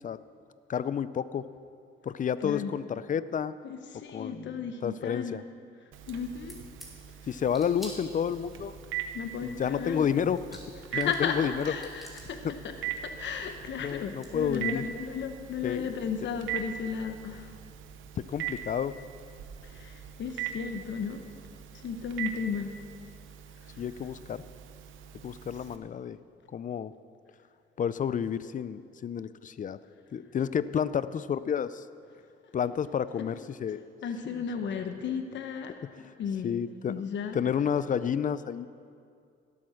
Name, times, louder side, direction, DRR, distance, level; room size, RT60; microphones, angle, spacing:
voice 1, 0.7-1.5 2.0-3.5 4.1-5.4 7.3-8.8 9.4-10.6 10.9-11.7 13.8-14.8 15.6-15.8 18.2-18.9 23.8-24.4 25.2-26.2 26.5-26.9 27.8-29.8 30.1-31.8 32.5-33.8 36.4-37.0 37.3-38.7, left 8 dB, 40° left, 15 dB, 0.5 m, -30 dB
voice 2, 3.6-5.4 6.1-6.6 9.1-10.1 10.9-12.7 13.0-17.6 19.6-21.2 21.7-22.7 23.6-23.7 34.0-36.5 36.9-37.4, left 6 dB, 65° left, 6 dB, 1.0 m, -34 dB
Telephone, 5.9-25.8, right 10 dB, 85° right, 0.9 m, -41 dB
sound 1, 6.5-6.9 7.5-8.5 10.0-10.1 10.3-11.3 11.6-12.3 13.6-13.7 13.9-14.3, equal, ahead, 3.1 m, -47 dB
16.0 x 8.6 x 6.4 m, 2.4 s
cardioid pair, 90°, 20 cm